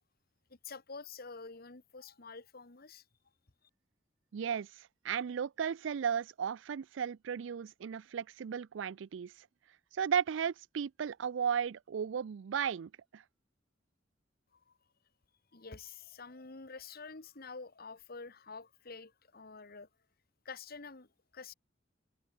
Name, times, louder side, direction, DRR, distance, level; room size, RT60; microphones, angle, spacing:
voice 1, 0.5-3.0 14.7-14.8 15.5-19.9 20.5-21.5, left 4 dB, 55° left, 1.7 m, -48 dB
voice 2, 4.3-9.5 9.9-13.2, right 7 dB, 80° right, 0.4 m, -35 dB
head